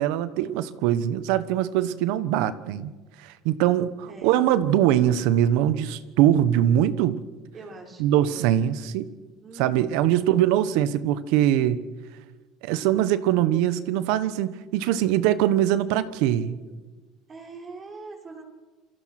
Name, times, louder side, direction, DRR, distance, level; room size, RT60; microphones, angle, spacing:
voice 1, 0.0-2.9 3.2-7.2 8.0-9.1 9.6-11.8 12.6-16.5, right 11 dB, 75° right, 14 dB, 1.3 m, -22 dB
voice 2, 7.5-8.6 9.4-10.3 16.3-16.8 17.3-18.4, right 3 dB, 30° right, 1 dB, 5.9 m, -43 dB
28.0 x 22.0 x 6.1 m, 1.3 s
supercardioid pair, 120°, 0 cm